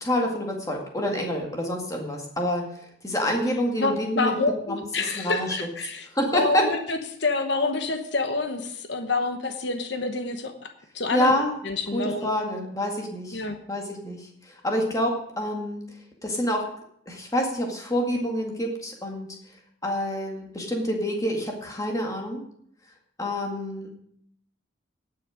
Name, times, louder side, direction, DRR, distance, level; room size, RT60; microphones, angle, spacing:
voice 1, 0.0-2.7 3.0-5.6 6.1-6.7 11.1-11.6 11.9-13.4 13.7-15.8 16.2-16.6 17.1-19.3 19.8-22.4 23.2-23.9, equal, 15° left, 1 dB, 2.0 m, -27 dB
voice 2, 3.8-6.1 6.3-10.5 10.9-11.4 11.6-12.3 13.3-13.6, left 3 dB, 60° left, 6 dB, 1.1 m, -27 dB
18.0 x 6.6 x 5.1 m, 0.69 s
head